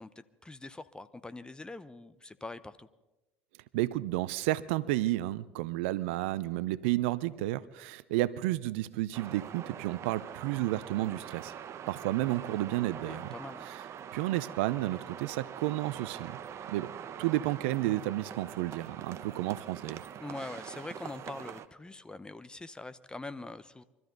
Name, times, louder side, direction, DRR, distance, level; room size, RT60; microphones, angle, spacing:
voice 1, 0.0-2.9 13.1-13.6 20.2-23.8, left 2 dB, 15° left, 13 dB, 1.0 m, -43 dB
voice 2, 3.7-11.5 11.9-13.3 13.7-13.8 14.1-16.4 16.7-16.9 17.2-20.0, right 16 dB, 75° right, 17 dB, 0.6 m, -31 dB
sound 1, 9.1-21.7, right 8 dB, 45° right, 1.0 m, -44 dB
24.0 x 13.5 x 4.0 m, 1.0 s
hypercardioid pair, 75°, 7 cm